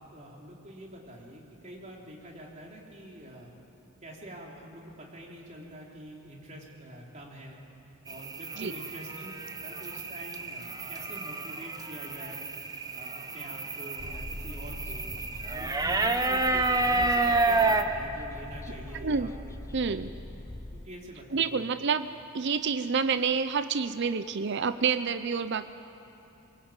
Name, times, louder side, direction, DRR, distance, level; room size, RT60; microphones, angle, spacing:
voice 1, 0.0-3.5 4.0-7.6 8.1-9.3 9.6-12.5 12.9-15.1 15.5-19.3 20.7-21.8, right 1 dB, 35° right, -2 dB, 3.8 m, -46 dB
sound 1, 8.1-17.8, right 3 dB, 20° right, 1.0 m, -30 dB
sound 2, 14.0-20.9, left 1 dB, 15° left, 0.5 m, -42 dB
voice 2, 18.9-19.3 19.7-20.1 21.3-22.1 22.3-25.6, right 5 dB, 55° right, 11 dB, 0.6 m, -28 dB
22.5 x 22.5 x 8.9 m, 2.9 s
head